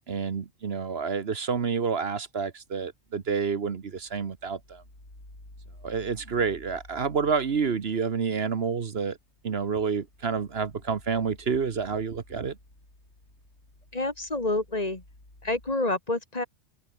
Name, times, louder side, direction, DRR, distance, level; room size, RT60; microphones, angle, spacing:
voice 1, 0.1-4.8 5.8-9.2 9.4-12.6, right 6 dB, 60° right, 1.4 m, -29 dB
sound 1, 3.1-15.7, left 1 dB, 70° left, 7.7 m, -54 dB
voice 2, 13.9-15.0 15.4-16.4, left 2 dB, 35° left, 2.4 m, -28 dB
omnidirectional pair, 1.2 m